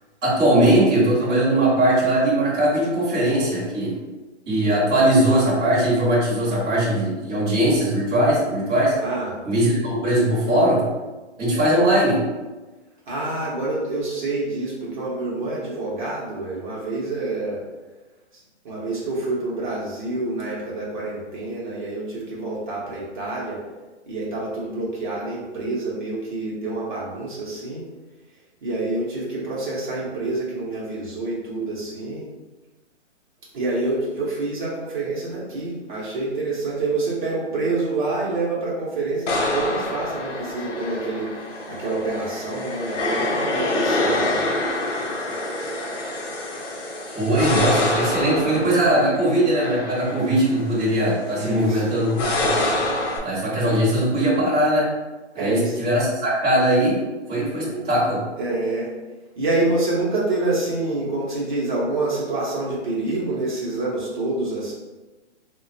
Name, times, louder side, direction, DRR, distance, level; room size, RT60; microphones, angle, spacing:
voice 1, 0.2-4.0 4.5-9.0 9.4-10.8 11.4-12.2 47.1-52.5 53.2-54.9 55.3-57.0 57.3-58.2, right 1 dB, 15° right, -10 dB, 0.9 m, -20 dB
voice 2, 9.0-9.4 13.1-17.6 18.3-23.6 24.1-27.9 28.6-32.3 33.5-44.5 51.3-51.9 55.3-55.8 58.4-58.9 59.4-64.7, right 2 dB, 40° right, -6 dB, 0.8 m, -27 dB
sound 1, 39.3-53.2, left 1 dB, 85° left, 0.7 m, -26 dB
3.4 x 2.2 x 2.6 m, 1.2 s
hypercardioid pair, 155°, 36 cm